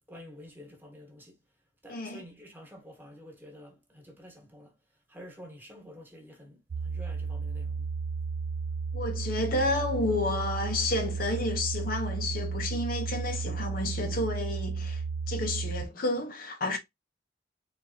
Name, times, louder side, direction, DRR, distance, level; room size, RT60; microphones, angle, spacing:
voice 1, 0.1-1.4 1.8-4.8 5.1-7.9, equal, 10° right, 1.4 m, -49 dB
voice 2, 1.9-2.2 8.9-16.8, left 2 dB, 50° left, 0.8 m, -31 dB
sound 1, 6.7-15.9, right 5 dB, 80° right, 0.6 m, -33 dB
4.0 x 3.5 x 2.7 m
head